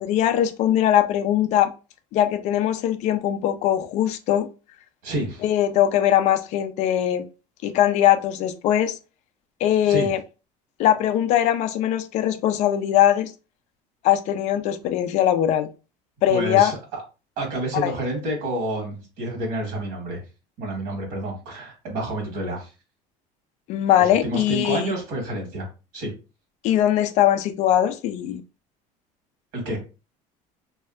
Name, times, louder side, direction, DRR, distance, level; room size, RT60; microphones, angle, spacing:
voice 1, 0.1-1.7 2.1-4.5 5.4-7.2 7.6-9.0 9.6-10.2 10.8-13.3 14.0-15.7 16.2-16.7 17.7-17.9 23.7-24.9 26.6-28.4, left 11 dB, 50° left, 0.4 m, -21 dB
voice 2, 5.0-5.4 9.8-10.1 16.3-17.0 17.4-20.2 20.6-22.7 24.0-25.7 25.9-26.1 29.5-29.8, right 1 dB, 65° right, 1.4 m, -29 dB
3.2 x 2.7 x 2.4 m
cardioid pair, 160°, 16 cm